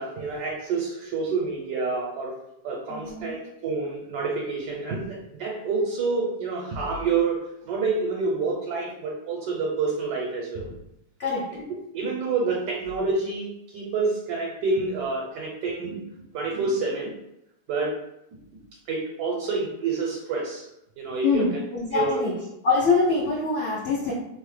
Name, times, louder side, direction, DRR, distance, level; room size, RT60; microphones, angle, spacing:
voice 1, 0.0-2.4 2.6-10.7 11.5-11.6 11.9-16.1 16.3-17.1 17.7-17.9 18.9-20.7 21.0-21.6 21.9-22.2, right 4 dB, 75° right, -2 dB, 1.2 m, -28 dB
voice 2, 2.9-3.3 11.2-11.5 21.2-22.3 22.6-24.1, left 4 dB, 85° left, -6 dB, 0.5 m, -24 dB
2.9 x 2.0 x 3.1 m, 0.84 s
omnidirectional pair, 1.8 m